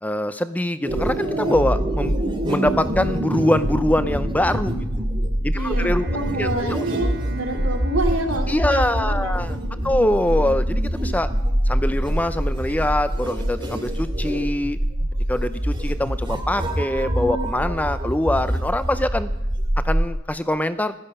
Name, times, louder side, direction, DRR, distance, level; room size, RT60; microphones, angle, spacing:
voice 1, 0.0-2.2 2.5-4.7 5.4-6.1 6.4-6.8 8.5-9.6 9.8-11.3 11.7-14.8 15.3-19.3 19.8-20.9, left 1 dB, 5° left, 12 dB, 0.5 m, -23 dB
sound 1, 0.8-20.1, right 1 dB, 20° right, 1.9 m, -24 dB
Bowed string instrument, 5.5-10.0, right 2 dB, 45° right, 1.0 m, -42 dB
voice 2, 5.5-10.1, right 2 dB, 65° right, 1 dB, 2.5 m, -28 dB
15.5 x 12.5 x 5.4 m, 0.88 s
head